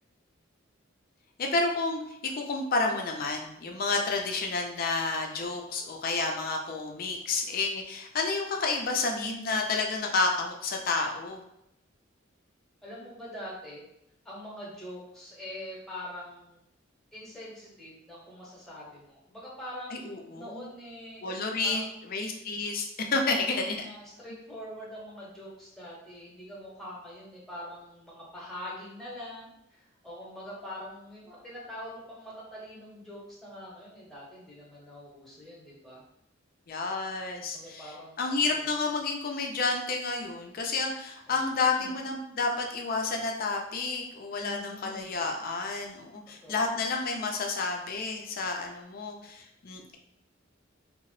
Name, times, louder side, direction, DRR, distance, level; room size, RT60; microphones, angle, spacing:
voice 1, 1.4-11.4 19.9-20.7 21.2-21.8 22.1-22.9 23.1-23.9 36.7-37.9 38.2-50.0, left 3 dB, 45° left, 2 dB, 0.4 m, -30 dB
voice 2, 12.8-13.8 14.2-16.6 17.1-21.2 21.6-22.1 23.2-36.0 37.4-38.8 41.3-42.0 44.4-45.3 46.4-46.8, left 1 dB, ahead, -7 dB, 0.8 m, -44 dB
2.8 x 2.0 x 3.0 m, 0.81 s
head